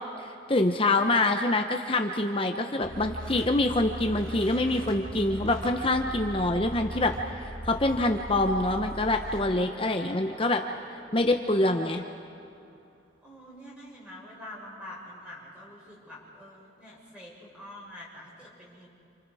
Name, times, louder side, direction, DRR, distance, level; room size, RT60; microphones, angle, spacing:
voice 1, 0.2-7.1 7.4-10.6 11.1-12.0, left 2 dB, 30° left, 4 dB, 0.9 m, -25 dB
sound 1, 2.8-12.8, equal, 85° right, 3.9 m, -41 dB
voice 2, 13.2-18.9, left 1 dB, 5° right, -6 dB, 7.2 m, -46 dB
29.0 x 29.0 x 4.9 m, 2.6 s
head